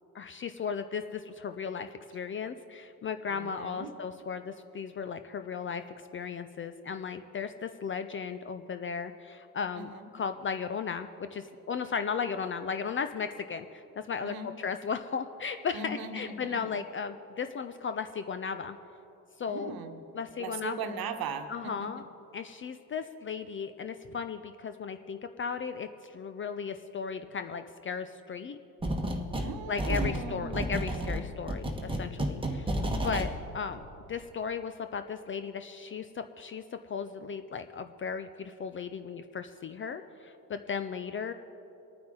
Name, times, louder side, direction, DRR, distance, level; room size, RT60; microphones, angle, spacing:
voice 1, 0.1-5.8 6.1-18.8 19.4-19.8 20.1-20.8 21.5-22.0 22.3-28.6 29.7-33.8 34.1-41.3, left 6 dB, 25° left, 10 dB, 0.5 m, -36 dB
voice 2, 3.3-3.9 9.7-10.1 14.2-14.5 15.7-16.6 19.5-20.0 20.4-22.0 29.3-31.2, right 4 dB, 50° right, 7 dB, 1.3 m, -39 dB
sound 1, 28.8-29.5 29.8-33.3, equal, 10° right, 1.3 m, -31 dB
23.5 x 9.4 x 3.8 m, 3.0 s
hypercardioid pair, 60°, 47 cm